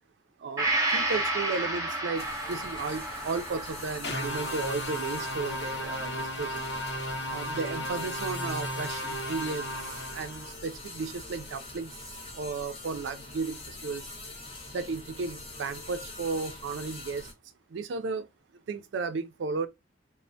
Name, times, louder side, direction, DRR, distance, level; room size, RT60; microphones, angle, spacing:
voice 1, 0.4-6.7 7.3-9.7 10.1-11.9 12.4-14.0 14.7-17.3 17.7-18.3 18.7-19.7, right 4 dB, 65° right, 0.4 m, -34 dB
Gong, 0.6-8.2 8.6-8.7, right 2 dB, 15° right, 0.8 m, -33 dB
sound 1, 2.1-17.3, left 2 dB, 30° left, 0.7 m, -44 dB
sound 2, 4.0-10.5, equal, 60° left, 0.7 m, -35 dB
3.2 x 2.0 x 2.6 m
head